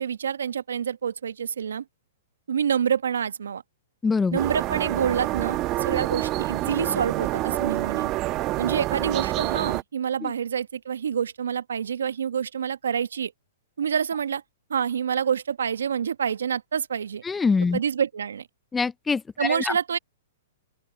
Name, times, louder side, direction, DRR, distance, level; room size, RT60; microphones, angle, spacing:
voice 1, 0.0-1.8 2.5-3.6 4.3-8.1 8.6-13.3 13.8-14.4 14.7-17.2 17.7-18.5 19.4-20.0, right 7 dB, 80° right, 1.3 m, -27 dB
voice 2, 4.0-4.4 10.2-10.3 17.3-17.8 18.7-19.7, left 4 dB, 10° left, 0.3 m, -24 dB
sound 1, 4.4-9.8, right 17 dB, 35° right, 1.1 m, -27 dB
open air
hypercardioid pair, 125°, 0 cm